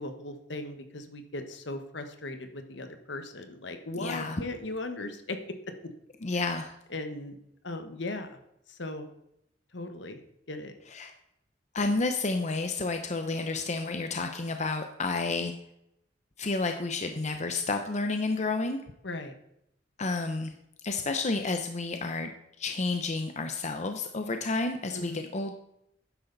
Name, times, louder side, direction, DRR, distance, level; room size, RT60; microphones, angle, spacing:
voice 1, 0.0-5.4 6.3-6.4 6.9-7.4 7.6-8.4 8.7-9.1 9.7-10.7 19.0-19.3 24.9-25.3, left 2 dB, 65° left, 7 dB, 1.4 m, -38 dB
voice 2, 4.0-4.4 6.2-6.7 10.9-11.1 11.7-15.5 16.4-18.8 20.0-20.5 20.8-22.3 22.6-25.5, left 3 dB, 40° left, 6 dB, 0.8 m, -30 dB
12.0 x 10.0 x 4.0 m, 0.79 s
head